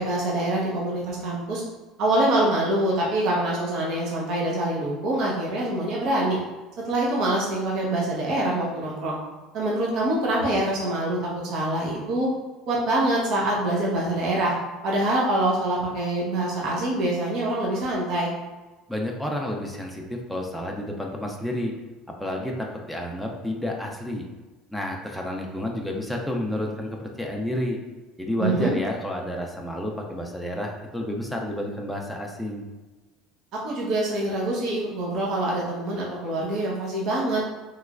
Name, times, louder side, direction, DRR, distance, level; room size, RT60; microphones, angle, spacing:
voice 1, 0.0-1.6 2.0-6.4 6.8-9.2 9.5-11.2 11.5-12.3 12.7-14.5 14.8-18.3 28.4-28.7 33.6-37.4, right 1 dB, 60° right, -4 dB, 0.8 m, -25 dB
voice 2, 18.9-21.7 22.2-24.3 24.7-27.8 28.2-32.6, left 1 dB, ahead, 1 dB, 0.4 m, -30 dB
3.1 x 3.0 x 2.4 m, 1.2 s
cardioid pair, 135°, 0 cm